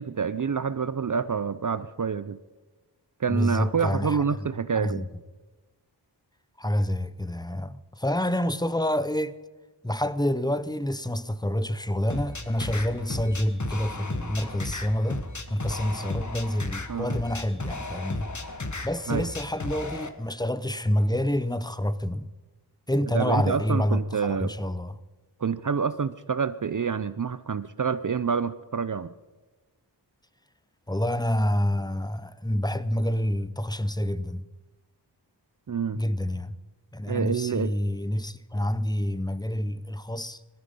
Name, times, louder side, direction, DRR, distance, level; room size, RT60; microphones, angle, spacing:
voice 1, 0.0-2.4 3.2-5.0 16.9-17.1 19.1-19.3 23.1-24.5 25.4-29.1 35.7-36.0 37.1-37.7, right 6 dB, 45° right, 0.6 m, -27 dB
voice 2, 3.3-4.5 4.7-5.1 6.6-9.4 9.8-15.2 15.5-18.3 18.8-22.3 22.9-25.0 30.9-34.5 35.9-36.6 36.9-40.4, left 1 dB, 10° left, 0.7 m, -28 dB
sound 1, 12.1-20.1, left 2 dB, 40° left, 1.4 m, -34 dB
19.0 x 13.5 x 5.4 m
wide cardioid pair, 50°, 43 cm